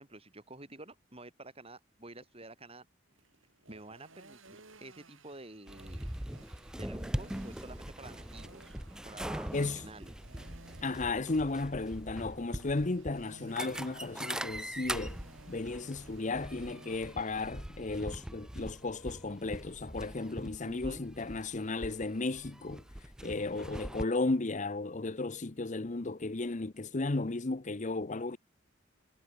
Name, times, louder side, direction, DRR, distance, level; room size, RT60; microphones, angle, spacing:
voice 1, 0.0-2.9 3.7-6.1 6.8-8.8 9.0-10.1 20.6-21.0, right 2 dB, 30° right, 6.1 m, -50 dB
sound 1, 3.1-17.1, right 2 dB, 85° right, 6.1 m, -57 dB
sound 2, 5.7-24.0, right 1 dB, 5° right, 0.4 m, -42 dB
voice 2, 10.8-15.2 15.5-22.8 23.2-28.4, left 3 dB, 40° left, 0.8 m, -34 dB
head